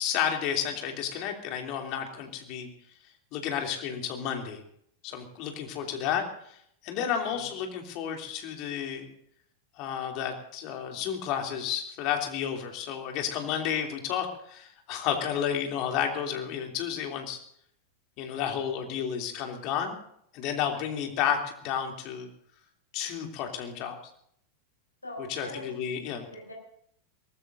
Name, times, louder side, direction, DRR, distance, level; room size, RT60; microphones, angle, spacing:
voice 1, 0.0-2.7 3.3-4.6 5.0-6.6 6.8-9.1 9.8-17.4 18.2-19.9 20.3-22.3 22.9-24.0 25.3-26.3, left 8 dB, 40° left, 3 dB, 3.1 m, -31 dB
voice 2, 7.0-7.5 25.0-25.7 26.0-26.5, left 1 dB, 80° left, 1 dB, 6.5 m, -44 dB
23.0 x 19.5 x 2.7 m, 0.67 s
figure-of-eight pair, 90°, 0 cm